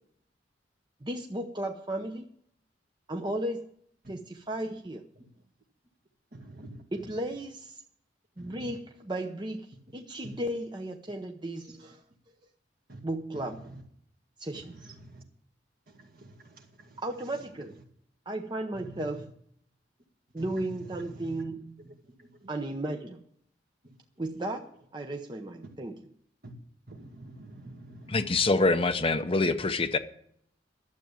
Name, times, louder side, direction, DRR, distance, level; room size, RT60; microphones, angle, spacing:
voice 1, 1.0-2.2 3.1-3.6 4.1-5.0 6.9-7.8 8.4-12.0 13.0-13.7 14.4-14.9 17.0-17.8 18.3-19.3 20.3-21.9 22.5-23.2 24.2-24.7 24.9-26.1, right 1 dB, 25° right, 0.8 m, -35 dB
voice 2, 6.3-6.8 8.4-8.7 10.2-10.3 12.9-13.0 13.3-13.8 15.0-15.2 15.9-17.0 18.7-19.0 20.5-20.7 21.0-21.4 21.8-22.5 26.4-26.5 26.9-28.5, right 1 dB, 55° right, 2.0 m, -47 dB
voice 3, 28.1-30.0, left 3 dB, 30° left, 0.6 m, -25 dB
12.0 x 7.7 x 8.7 m
head